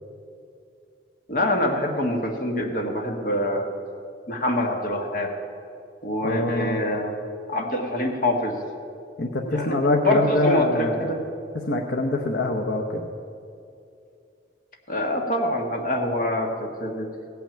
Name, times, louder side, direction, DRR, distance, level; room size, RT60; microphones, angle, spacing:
voice 1, 1.3-3.7 4.3-5.3 6.0-7.1 7.5-8.6 9.5-11.2 14.9-17.1, left 1 dB, 50° left, 2 dB, 1.5 m, -25 dB
voice 2, 6.2-6.9 9.2-11.1 11.7-13.0, left 2 dB, 70° left, 0 dB, 1.0 m, -24 dB
16.5 x 6.0 x 8.8 m, 2.5 s
head